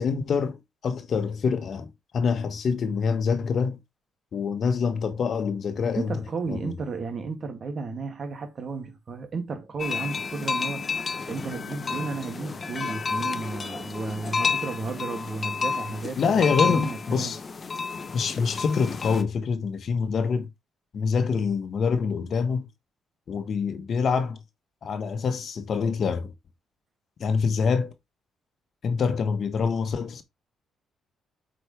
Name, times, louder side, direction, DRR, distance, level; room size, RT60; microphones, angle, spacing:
voice 1, 0.0-3.8 4.3-6.7 16.2-17.4 18.1-20.5 20.9-22.7 23.3-24.4 24.8-26.3 27.2-27.9 28.8-30.2, left 5 dB, 55° left, 1.3 m, -26 dB
voice 2, 6.0-17.3, right 4 dB, 45° right, 2.4 m, -33 dB
sound 1, 9.8-19.2, left 5 dB, 35° left, 0.9 m, -31 dB
8.2 x 5.1 x 3.4 m
cardioid pair, 90°, 0 cm